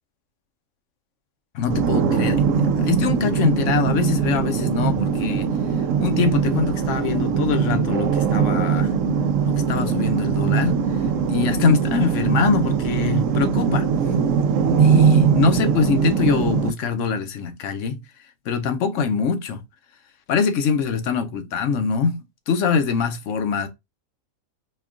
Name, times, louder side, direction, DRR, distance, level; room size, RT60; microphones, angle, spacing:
voice 1, 1.5-2.4 2.8-5.5 6.0-8.9 9.4-10.8 11.3-13.9 14.8-18.0 18.5-19.6 20.3-22.2 22.5-23.7, left 6 dB, 65° left, 1.0 m, -23 dB
sound 1, 1.7-16.7, right 6 dB, 70° right, 0.9 m, -21 dB
4.4 x 2.3 x 3.6 m
omnidirectional pair, 1.4 m